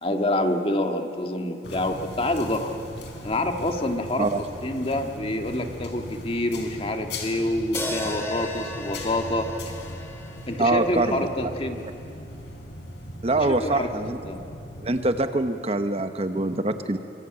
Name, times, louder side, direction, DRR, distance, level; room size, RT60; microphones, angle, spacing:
voice 1, 0.0-2.8 3.2-4.3 4.6-9.7 10.5-11.8 13.4-13.9 14.2-14.5, left 1 dB, 30° left, 5 dB, 1.8 m, -27 dB
sound 1, 1.6-15.2, left 1 dB, 80° left, 4.0 m, -39 dB
sound 2, 7.7-12.0, left 1 dB, 15° left, 3.2 m, -36 dB
voice 2, 10.6-11.5 13.2-14.2 14.8-17.0, right 2 dB, 35° right, 9 dB, 1.0 m, -24 dB
25.0 x 23.5 x 8.9 m, 2.7 s
head